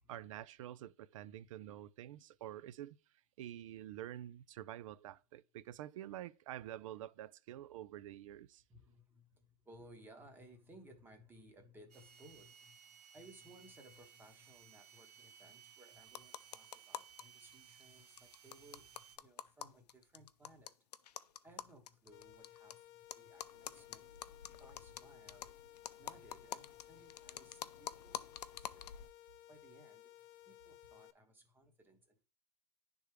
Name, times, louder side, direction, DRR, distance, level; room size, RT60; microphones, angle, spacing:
voice 1, 0.1-3.0 3.4-8.6, right 12 dB, 55° right, 0.4 m, -48 dB
voice 2, 8.7-20.8 21.4-24.1 24.6-25.7 26.0-28.9 29.5-30.1 30.5-32.2, right 1 dB, 10° right, 1.0 m, -61 dB
sound 1, 11.9-19.2, right 8 dB, 80° right, 0.9 m, -60 dB
sound 2, 16.1-17.2 17.5-17.6 17.8-17.9 18.2-22.7 23.1-29.1, left 10 dB, 80° left, 0.5 m, -48 dB
sound 3, 22.1-31.1, left 14 dB, 25° left, 0.4 m, -59 dB
10.0 x 3.5 x 3.2 m
hypercardioid pair, 135°, 20 cm